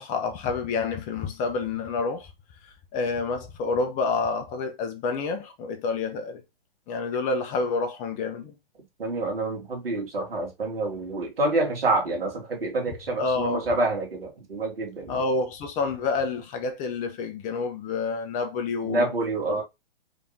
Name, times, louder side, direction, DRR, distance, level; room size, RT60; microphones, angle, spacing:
voice 1, 0.0-2.3 2.6-6.4 6.9-8.5 12.9-13.7 15.1-19.1 19.5-19.6, left 4 dB, 25° left, 1.2 m, -28 dB
voice 2, 9.0-15.2 18.8-19.6, right 2 dB, 75° right, 2.5 m, -27 dB
5.1 x 3.6 x 2.8 m
hypercardioid pair, 125°, 29 cm